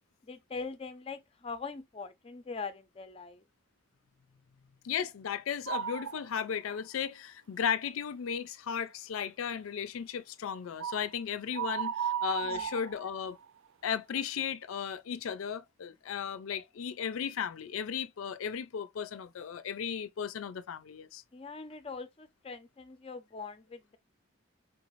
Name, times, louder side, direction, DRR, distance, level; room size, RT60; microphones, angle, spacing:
voice 1, 0.2-3.4 12.5-12.6 21.3-24.0, left 4 dB, 30° left, 0.4 m, -42 dB
voice 2, 4.8-13.4 13.8-21.2, left 7 dB, 90° left, 0.4 m, -35 dB
sound 1, 5.7-6.2 6.7-6.8 10.8-11.1 11.5-13.4, right 8 dB, 75° right, 0.4 m, -34 dB
4.6 x 2.5 x 3.0 m
head